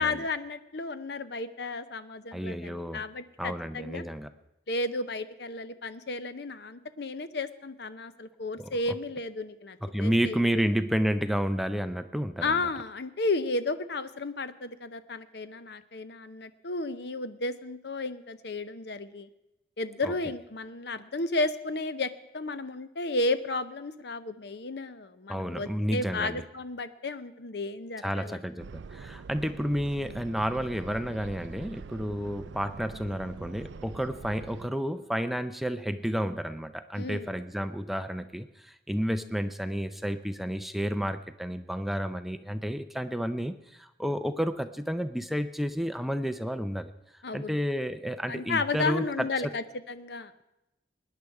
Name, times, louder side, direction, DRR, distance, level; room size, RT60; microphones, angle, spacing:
voice 1, 0.0-4.0 4.7-10.6 12.4-19.3 19.8-28.4 37.0-37.3 47.2-47.6 48.3-50.4, left 2 dB, 60° left, 13 dB, 0.8 m, -33 dB
voice 2, 2.3-3.1 3.4-4.3 8.6-8.8 9.8-12.7 20.0-20.1 25.3-26.4 28.0-46.9 47.3-49.6, equal, ahead, 10 dB, 0.5 m, -31 dB
sound 1, 28.6-34.7, right 5 dB, 70° right, 0.4 m, -44 dB
20.5 x 10.0 x 4.7 m, 0.93 s
head